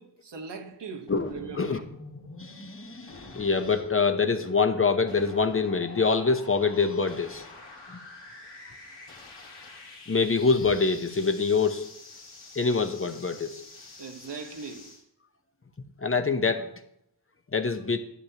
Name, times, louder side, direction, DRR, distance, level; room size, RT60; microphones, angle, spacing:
voice 1, 0.0-1.9 14.0-15.0, right 5 dB, 75° right, 1.3 m, -40 dB
sound 1, 1.1-15.0, left 3 dB, 80° left, 2.2 m, -46 dB
voice 2, 2.4-7.4 7.9-8.0 10.1-11.9 12.6-13.6 16.0-16.7 17.5-18.0, left 4 dB, 30° left, 0.8 m, -25 dB
11.0 x 10.0 x 2.8 m
wide cardioid pair, 90°, 42 cm